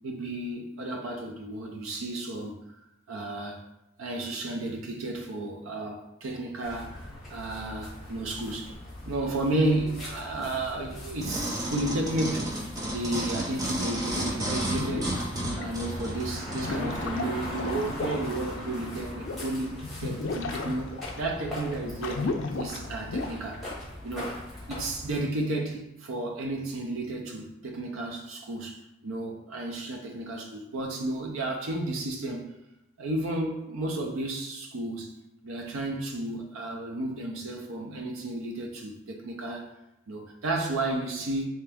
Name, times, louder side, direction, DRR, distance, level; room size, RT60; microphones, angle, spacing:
voice 1, 0.0-2.5 3.1-3.6 4.0-8.8 9.0-12.5 12.9-15.2 15.6-19.7 20.0-22.2 22.5-23.6 24.0-24.4 24.7-32.5 33.0-35.1 35.4-39.7 40.1-41.5, right 2 dB, 75° right, 1 dB, 0.5 m, -32 dB
sound 1, 6.6-25.2, left 1 dB, ahead, 1.2 m, -40 dB
sound 2, 11.2-16.7 17.3-17.4, right 1 dB, 15° right, 0.5 m, -32 dB
sound 3, 14.5-15.9 16.3-23.3, left 3 dB, 60° left, 0.3 m, -35 dB
3.4 x 2.8 x 3.4 m, 0.90 s
head